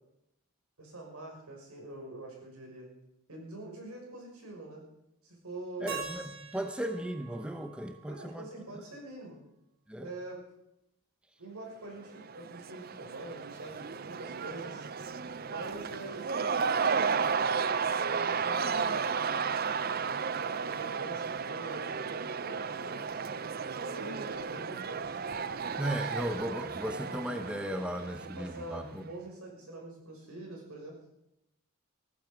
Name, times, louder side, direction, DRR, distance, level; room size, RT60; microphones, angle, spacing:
voice 1, 0.8-2.9 3.3-4.8 5.2-6.0 8.1-9.4 10.0-10.4 11.4-14.9 15.5-17.3 18.0-19.2 20.0-23.2 23.8-25.2 28.2-30.9, right 2 dB, 90° right, 0 dB, 5.9 m, -44 dB
voice 2, 5.8-6.2 6.5-8.5 9.9-10.1 25.8-29.0, equal, 5° right, 7 dB, 0.8 m, -36 dB
Keyboard (musical), 5.9-8.8, right 6 dB, 70° right, 3.5 m, -44 dB
Cheering / Crowd, 12.0-28.9, right 5 dB, 45° right, 0.5 m, -33 dB
15.5 x 14.5 x 5.2 m, 0.85 s
head